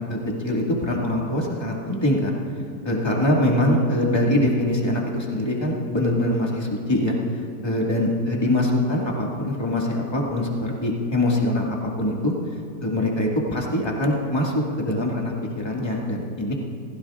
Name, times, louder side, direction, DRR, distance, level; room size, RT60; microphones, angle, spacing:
voice 1, 0.4-2.3 2.8-7.2 7.6-12.3 12.8-16.5, left 1 dB, 15° left, -3 dB, 1.9 m, -23 dB
27.5 x 16.0 x 2.5 m, 2.3 s
omnidirectional pair, 1.9 m